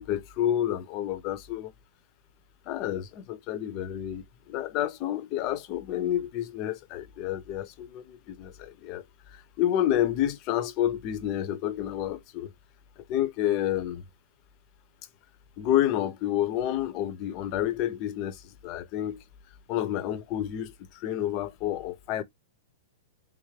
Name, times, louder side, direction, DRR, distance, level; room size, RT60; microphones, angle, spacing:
voice 1, 0.0-1.7 2.7-9.0 9.3-12.5 13.1-14.0 15.6-19.2 19.7-22.2, left 11 dB, 35° left, 0.5 m, -29 dB
3.5 x 2.3 x 3.2 m
supercardioid pair, 155°, 0 cm